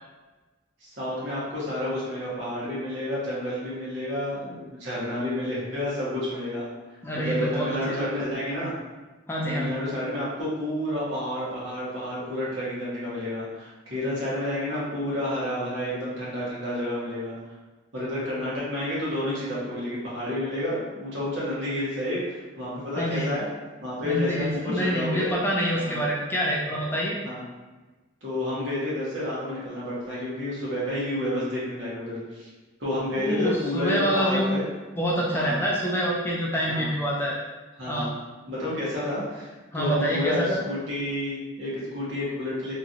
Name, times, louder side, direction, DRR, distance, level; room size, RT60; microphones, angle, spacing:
voice 1, 0.8-6.7 7.1-8.7 9.4-17.3 17.9-23.5 23.8-25.3 25.7-26.0 27.2-27.4 28.2-32.5 32.8-34.6 35.3-35.6 36.7-36.9 37.8-38.1 38.5-42.7, left 1 dB, 70° right, -8 dB, 1.1 m, -30 dB
voice 2, 7.0-8.2 9.3-9.7 23.0-23.3 24.0-27.2 33.2-34.6 35.0-37.3 37.9-38.1 39.7-40.6, equal, 10° left, -4 dB, 0.3 m, -26 dB
2.9 x 2.5 x 2.6 m, 1.2 s
head